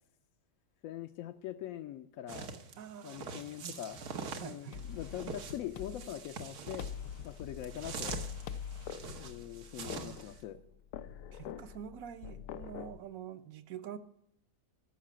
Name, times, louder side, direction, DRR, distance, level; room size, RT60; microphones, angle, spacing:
voice 1, 0.8-2.5 3.0-4.0 4.4-6.9 7.2-8.2 9.1-10.6, left 11 dB, 70° left, 7 dB, 0.9 m, -43 dB
sound 1, 2.3-10.4, right 4 dB, 90° right, 1.6 m, -44 dB
voice 2, 2.8-3.8 4.4-4.9 9.8-10.2 11.3-14.0, right 9 dB, 70° right, 11 dB, 1.1 m, -46 dB
sound 2, 4.7-13.0, left 8 dB, 90° left, 1.1 m, -44 dB
14.0 x 5.8 x 7.4 m, 0.78 s
omnidirectional pair, 1.6 m